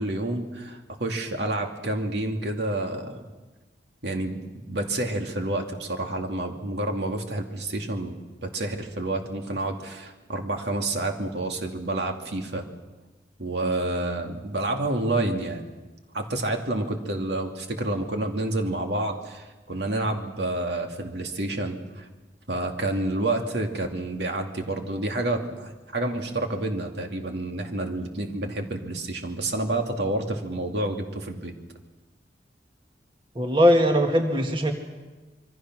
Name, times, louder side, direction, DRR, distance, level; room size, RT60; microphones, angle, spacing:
voice 1, 0.0-3.2 4.0-12.7 13.4-15.7 16.1-22.1 22.5-31.5, right 2 dB, 70° right, 3 dB, 2.5 m, -29 dB
voice 2, 33.4-34.7, equal, 25° right, 3 dB, 1.8 m, -20 dB
27.0 x 23.5 x 6.2 m, 1.2 s
head